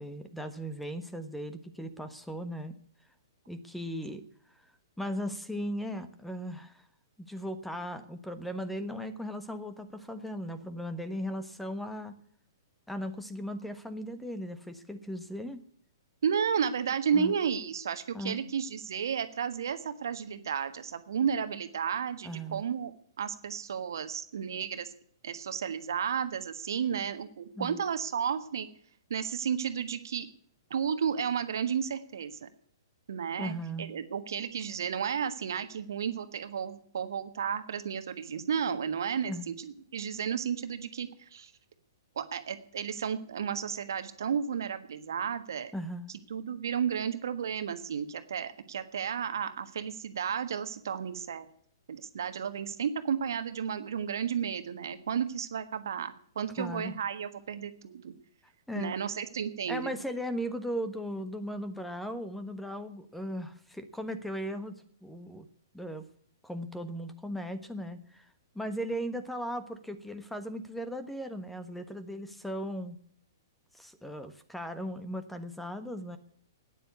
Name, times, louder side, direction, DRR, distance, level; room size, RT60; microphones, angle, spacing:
voice 1, 0.0-2.7 3.5-4.2 5.0-6.8 7.2-12.1 12.9-15.6 17.1-17.3 18.1-18.4 22.2-22.6 27.6-27.8 33.4-33.9 39.3-39.5 45.7-46.1 56.6-56.9 58.7-58.9 59.7-64.7 65.0-65.5 65.7-66.0 66.4-68.3 68.5-73.0 73.7-76.2, equal, 5° left, 11 dB, 1.3 m, -37 dB
voice 2, 16.2-24.9 25.2-28.7 29.1-30.3 30.7-32.5 33.1-41.5 42.1-45.7 46.3-51.5 51.9-58.1 58.7-60.0, right 7 dB, 65° right, 10 dB, 1.5 m, -33 dB
12.5 x 10.0 x 9.6 m, 0.62 s
figure-of-eight pair, 115°, 2 cm